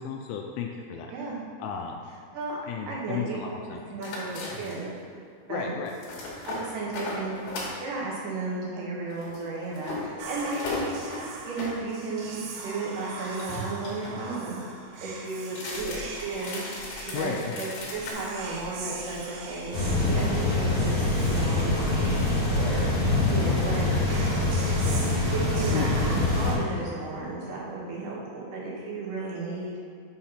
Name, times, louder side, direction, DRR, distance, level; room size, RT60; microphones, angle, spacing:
voice 1, 0.0-1.1 1.6-2.0 2.7-3.8 5.5-5.9 17.1-17.6 25.7-25.9, left 7 dB, 80° left, 1 dB, 2.2 m, -33 dB
voice 2, 1.1-1.4 2.3-2.6 2.9-3.5 3.9-4.9 5.5-5.8 6.4-7.4 7.8-11.0 11.4-14.6 15.0-16.6 17.0-19.8 20.1-22.3 22.5-23.0 23.3-24.1 25.3-29.7, right 3 dB, 65° right, -4 dB, 2.4 m, -34 dB
sound 1, 4.0-4.9 5.9-7.8 9.1-11.8 13.0-14.2 15.5-18.1, left 2 dB, 65° left, 2.6 m, -37 dB
Whispering, 10.2-27.3, right 3 dB, 80° right, 2.7 m, -41 dB
sound 2, 19.7-26.5, left 2 dB, 50° left, 1.8 m, -24 dB
6.5 x 4.2 x 5.7 m, 2.3 s
omnidirectional pair, 4.5 m